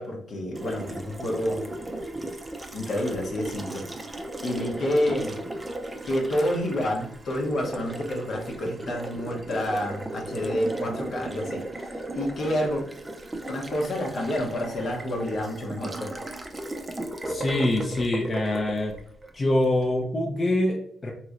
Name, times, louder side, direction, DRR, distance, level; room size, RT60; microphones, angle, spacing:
voice 1, 0.0-1.7 2.7-3.9 4.4-5.4 6.0-11.7 12.1-12.8 13.5-16.2, left 1 dB, 60° left, 1 dB, 0.8 m, -28 dB
Water tap faucet, 0.6-19.7, right 1 dB, 20° right, 0.4 m, -36 dB
voice 2, 17.2-19.0 19.3-21.1, left 1 dB, 30° left, 0 dB, 0.5 m, -25 dB
3.0 x 2.9 x 2.4 m, 0.64 s
cardioid pair, 90°, 0 cm